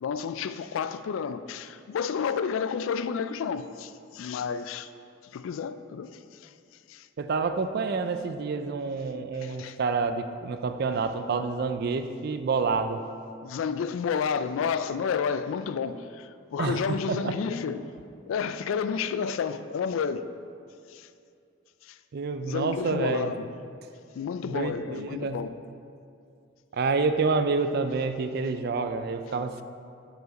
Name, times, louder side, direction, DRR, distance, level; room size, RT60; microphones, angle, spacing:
voice 1, 0.0-4.9 5.3-6.5 6.9-7.1 9.3-9.8 13.4-17.9 18.3-20.3 20.9-21.1 21.8-22.0 22.4-23.5 24.1-25.6, left 6 dB, 75° left, 0.3 m, -31 dB
voice 2, 7.2-13.0 16.6-17.3 22.1-23.3 24.4-25.4 26.7-29.6, right 4 dB, 50° right, 0.4 m, -28 dB
6.5 x 4.9 x 5.1 m
head